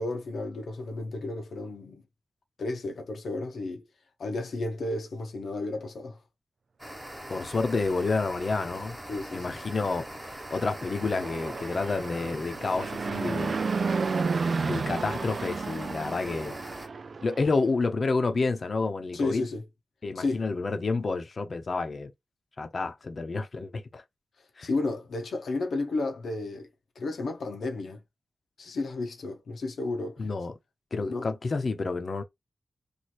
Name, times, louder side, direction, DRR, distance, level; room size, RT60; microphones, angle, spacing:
voice 1, 0.0-2.0 2.6-3.8 4.2-6.2 9.1-9.4 19.1-19.6 20.1-20.4 24.6-26.7 27.0-28.0 28.6-30.3 31.0-31.3, left 2 dB, 90° left, 0.9 m, -32 dB
sound 1, 6.8-16.9, equal, 10° right, 1.2 m, -42 dB
voice 2, 7.3-9.0 9.3-13.6 14.6-16.6 17.2-19.4 20.0-22.1 22.6-24.0 24.6-24.7 30.2-30.5 30.9-32.2, left 3 dB, 55° left, 0.8 m, -29 dB
Fixed-wing aircraft airplane, 10.2-17.6, right 4 dB, 60° right, 0.3 m, -32 dB
3.1 x 2.7 x 4.3 m
wide cardioid pair, 95°, 0 cm